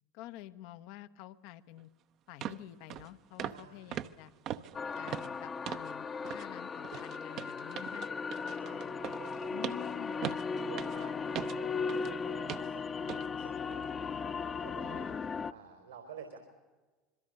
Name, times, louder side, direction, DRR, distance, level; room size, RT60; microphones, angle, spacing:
voice 1, 0.1-1.9 2.3-4.3 5.0-8.1 9.5-10.3 14.8-15.2, left 14 dB, 65° left, 12 dB, 1.0 m, -49 dB
sound 1, 1.8-1.9 2.4-2.6 2.9-3.1 3.4-3.6 3.9-5.9 6.2-6.5 6.8-12.1 12.5-12.7 13.1-13.3 13.7-13.8, right 11 dB, 55° right, 0.8 m, -41 dB
voice 2, 3.5-4.1 8.1-10.2 10.7-16.4, right 7 dB, 85° right, 4 dB, 3.9 m, -52 dB
sound 2, 4.7-15.5, left 5 dB, 30° left, 0.9 m, -37 dB
26.0 x 22.5 x 6.6 m, 1.3 s
figure-of-eight pair, 70°, 0 cm